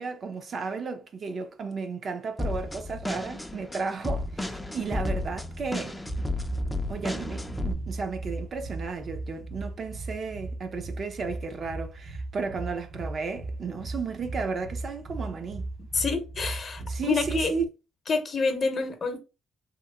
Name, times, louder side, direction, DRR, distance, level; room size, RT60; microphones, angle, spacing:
voice 1, 0.0-6.0 6.9-15.7 16.8-17.7, right 4 dB, 50° right, 0.5 m, -33 dB
sound 1, 2.4-7.7, left 2 dB, 10° left, 0.4 m, -33 dB
sound 2, 5.2-17.7, right 2 dB, 75° right, 0.9 m, -37 dB
voice 2, 15.9-17.5 18.1-19.2, left 4 dB, 45° left, 0.7 m, -28 dB
2.9 x 2.8 x 2.2 m
cardioid pair, 90°, 0 cm